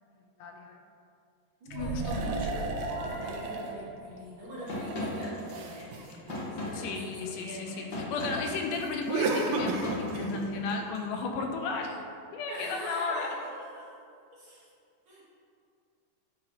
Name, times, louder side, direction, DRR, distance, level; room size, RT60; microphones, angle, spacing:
voice 1, 0.4-0.8 1.7-2.6 6.7-12.0 12.3-13.3, left 4 dB, 85° left, 3 dB, 2.2 m, -34 dB
voice 2, 1.6-2.3 3.0-7.0 7.2-7.9 12.5-13.9 14.3-14.6 15.0-15.2, right 1 dB, 50° right, -8 dB, 1.7 m, -43 dB
sound 1, 1.7-4.3, right 2 dB, 70° right, 2.1 m, -37 dB
sound 2, 2.0-3.7 4.4-7.1 9.1-10.4, right 3 dB, 90° right, 1.5 m, -34 dB
sound 3, 4.7-11.0, left 1 dB, 55° left, 1.2 m, -38 dB
8.7 x 2.9 x 4.7 m, 2.3 s
omnidirectional pair, 3.6 m